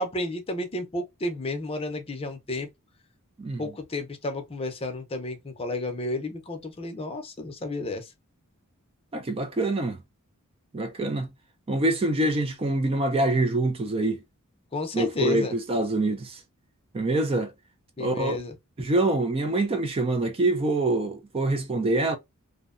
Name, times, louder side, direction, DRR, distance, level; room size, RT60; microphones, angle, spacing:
voice 1, 0.0-2.7 3.6-8.0 14.7-15.5 18.0-18.5, left 2 dB, 25° left, 0.6 m, -31 dB
voice 2, 3.4-3.7 9.1-10.0 10.7-11.3 11.7-14.2 14.9-16.4 16.9-17.5 18.0-18.4 18.8-22.2, right 2 dB, 25° right, 0.4 m, -25 dB
2.6 x 2.1 x 2.4 m
head